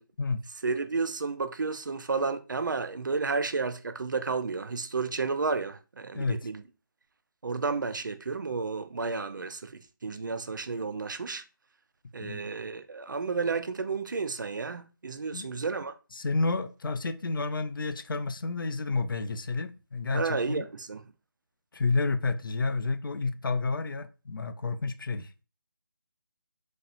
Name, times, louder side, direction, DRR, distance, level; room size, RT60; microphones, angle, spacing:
voice 1, 0.6-6.6 7.4-11.4 12.1-15.9 20.1-21.0, right 4 dB, 60° right, 0.4 m, -32 dB
voice 2, 6.1-6.5 12.2-12.4 15.3-15.5 16.1-20.6 21.7-25.4, left 3 dB, 70° left, 0.4 m, -30 dB
4.1 x 2.0 x 2.5 m
figure-of-eight pair, 170°, 12 cm